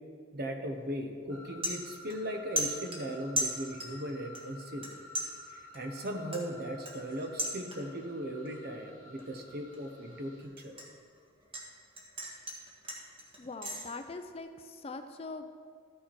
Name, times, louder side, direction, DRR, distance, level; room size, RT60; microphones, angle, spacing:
voice 1, 0.3-4.9 5.7-10.7, equal, 50° right, 5 dB, 0.9 m, -38 dB
sound 1, 0.7-0.9 1.3-2.3 2.6-4.0 4.3-4.9 5.1-8.1 8.4-8.8 9.2-11.7 11.9-13.8, right 1 dB, 25° right, 1.6 m, -37 dB
sound 2, 1.3-10.4, left 2 dB, 75° right, 1.6 m, -52 dB
voice 2, 13.4-15.5, left 3 dB, 30° left, 7 dB, 0.4 m, -42 dB
13.0 x 6.5 x 4.7 m, 2.1 s
head